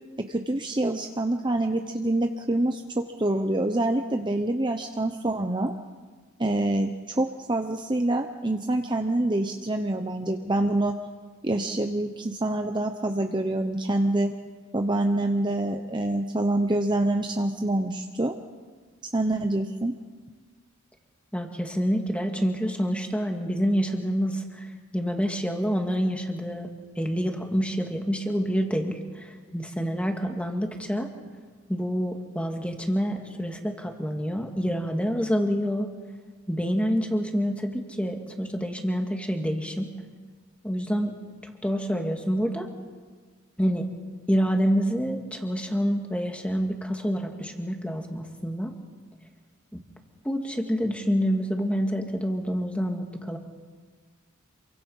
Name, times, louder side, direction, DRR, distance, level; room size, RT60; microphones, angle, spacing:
voice 1, 0.3-5.7 6.4-10.9 11.4-14.3 14.7-18.3 19.1-19.9, right 1 dB, 20° right, 5 dB, 0.8 m, -26 dB
voice 2, 21.3-26.7 27.0-31.1 31.7-35.9 36.5-39.9 40.6-41.2 41.4-42.7 43.6-43.9 44.3-48.7 49.7-49.8 50.2-53.4, equal, 5° left, 3 dB, 1.9 m, -27 dB
27.5 x 23.5 x 5.6 m, 1.5 s
head